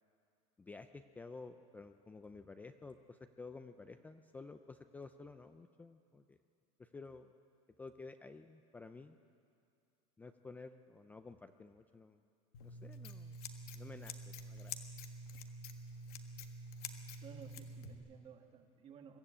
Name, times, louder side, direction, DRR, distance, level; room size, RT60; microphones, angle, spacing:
voice 1, 0.6-6.4 6.8-7.3 7.8-9.2 10.2-12.2 12.6-13.4 13.7-14.7, left 3 dB, 10° left, 8 dB, 0.4 m, -52 dB
Scissors, 12.5-17.9, left 1 dB, 85° left, 1.6 m, -48 dB
voice 2, 17.2-19.2, right 7 dB, 30° right, 5 dB, 1.6 m, -55 dB
23.0 x 13.5 x 8.7 m, 2.3 s
supercardioid pair, 155°, 18 cm